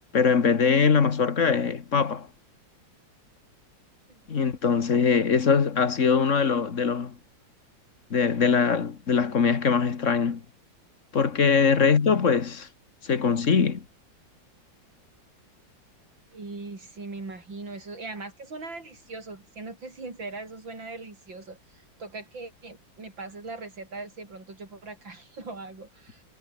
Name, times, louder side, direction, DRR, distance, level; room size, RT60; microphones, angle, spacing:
voice 1, 0.1-2.3 4.3-7.1 8.1-10.4 11.1-12.7 13.0-13.8, left 5 dB, 45° left, 1.8 m, -22 dB
voice 2, 16.3-26.2, right 3 dB, 90° right, 6.2 m, -40 dB
omnidirectional pair, 2.0 m